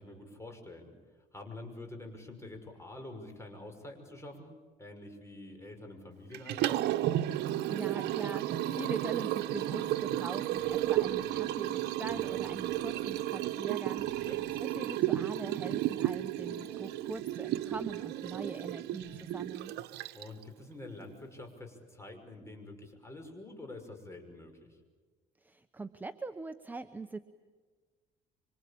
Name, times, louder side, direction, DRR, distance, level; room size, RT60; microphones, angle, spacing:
voice 1, 0.0-4.5 4.8-6.8 14.2-14.4 20.1-24.8, left 2 dB, 15° left, 4 dB, 6.0 m, -47 dB
sound 1, 3.9-4.0 5.5-5.6 7.4-7.5 8.1-19.7, left 10 dB, 60° left, 2.4 m, -57 dB
Liquid, 6.3-20.4, right 14 dB, 80° right, 1.1 m, -33 dB
voice 2, 7.7-14.3 14.6-19.7 25.4-27.2, right 3 dB, 10° right, 8 dB, 1.0 m, -42 dB
26.5 x 25.5 x 8.7 m, 1.4 s
cardioid pair, 110°, 17 cm